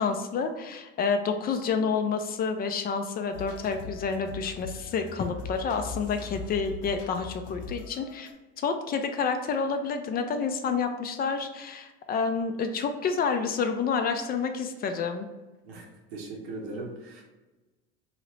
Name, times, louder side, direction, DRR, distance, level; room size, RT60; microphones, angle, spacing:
voice 1, 0.0-8.3 8.6-15.3, left 5 dB, 30° left, 7 dB, 0.4 m, -29 dB
sound 1, 3.3-8.3, left 4 dB, 65° left, 0.7 m, -41 dB
voice 2, 15.6-17.2, right 2 dB, 90° right, -1 dB, 1.0 m, -39 dB
2.8 x 2.7 x 3.1 m, 1.1 s
hypercardioid pair, 90°, 30 cm